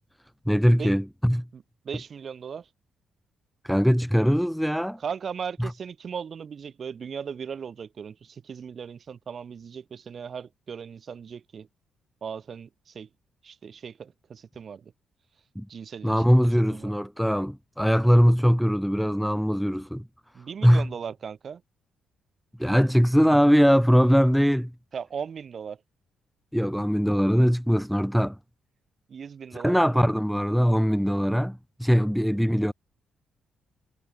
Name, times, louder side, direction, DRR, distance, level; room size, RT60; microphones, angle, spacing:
voice 1, 0.5-1.5 3.6-5.0 5.6-5.7 15.6-15.7 16.0-20.0 20.6-20.9 22.6-24.7 26.5-28.4 29.5-32.7, equal, ahead, 0.8 m, -21 dB
voice 2, 1.5-2.7 5.0-11.7 12.2-13.1 13.4-14.9 15.7-16.2 16.7-16.9 20.3-21.6 24.9-25.8 29.1-29.8, right 7 dB, 50° right, 1.5 m, -37 dB
cardioid pair, 90°, 0 cm